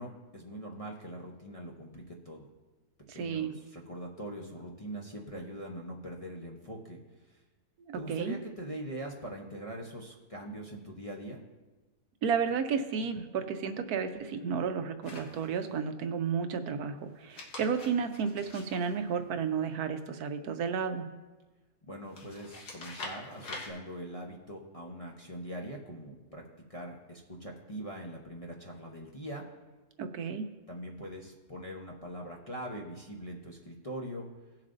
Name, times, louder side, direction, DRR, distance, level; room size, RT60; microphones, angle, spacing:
voice 1, 0.0-2.5 3.1-7.0 7.3-7.4 7.9-11.4 21.8-26.4 26.7-29.4 30.7-34.3, right 1 dB, 30° left, -2 dB, 0.8 m, -42 dB
voice 2, 3.1-3.5 7.9-8.4 12.2-21.1 30.0-30.5, right 6 dB, 75° right, 8 dB, 1.1 m, -32 dB
sound 1, 15.0-15.8 17.1-19.7 22.1-23.7, left 2 dB, 75° left, 2.1 m, -46 dB
18.0 x 7.3 x 2.6 m, 1.2 s
omnidirectional pair, 1.7 m